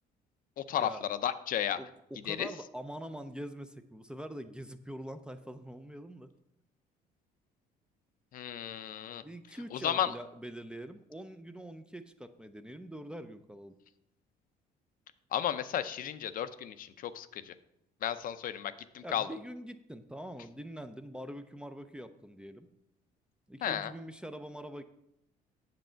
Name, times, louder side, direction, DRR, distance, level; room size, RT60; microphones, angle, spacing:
voice 1, 0.6-1.8 2.3-2.5 8.3-9.2 9.7-10.1 15.3-17.5 18.0-19.3 23.6-23.9, left 10 dB, 55° left, 12 dB, 0.5 m, -33 dB
voice 2, 1.8-6.3 9.2-13.7 19.0-22.7 23.5-24.8, right 1 dB, 5° right, 9 dB, 0.5 m, -44 dB
7.8 x 7.2 x 4.4 m, 0.80 s
cardioid pair, 110°, 17 cm